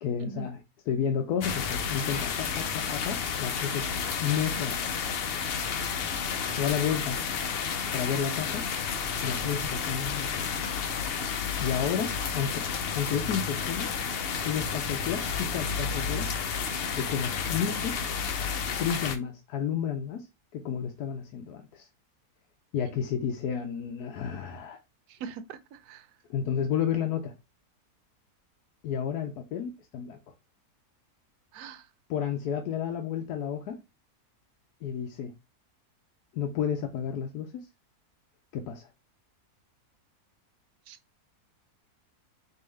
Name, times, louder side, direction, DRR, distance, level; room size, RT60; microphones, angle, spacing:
voice 1, 0.0-3.9 4.2-5.0 6.6-7.2 7.9-8.6 9.2-10.8 11.6-13.9 14.4-16.3 16.9-18.0 18.8-20.3 20.5-21.9 22.7-24.8 26.3-27.3 28.8-30.2 32.1-33.8 34.8-35.3 36.3-37.7 38.5-38.9, left 8 dB, 85° left, 1.2 m, -31 dB
sound 1, 1.4-19.2, left 6 dB, 65° left, 0.6 m, -31 dB
voice 2, 25.1-26.0 31.5-31.8 40.9-41.0, right 7 dB, 80° right, 1.1 m, -41 dB
4.6 x 2.8 x 3.1 m
omnidirectional pair, 1.6 m